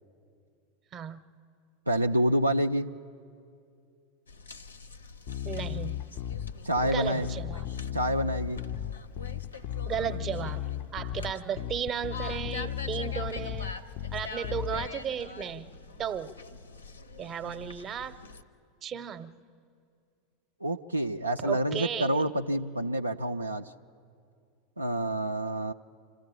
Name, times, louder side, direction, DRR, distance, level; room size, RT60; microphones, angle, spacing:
voice 1, 1.9-2.9 6.6-7.3 7.9-8.6 17.4-17.7 20.6-23.7 24.8-25.7, right 1 dB, 85° right, 5 dB, 0.4 m, -28 dB
sound 1, 4.3-18.4, left 3 dB, 75° left, 0.7 m, -45 dB
Bass guitar, 5.3-14.9, left 11 dB, 45° left, 0.4 m, -36 dB
voice 2, 5.4-6.0 6.8-7.6 9.8-13.7 14.1-16.3 17.2-18.2 18.8-19.3 21.4-22.3, right 8 dB, 30° right, 13 dB, 0.7 m, -35 dB
26.0 x 14.0 x 8.5 m, 2.4 s
figure-of-eight pair, 85°, 0 cm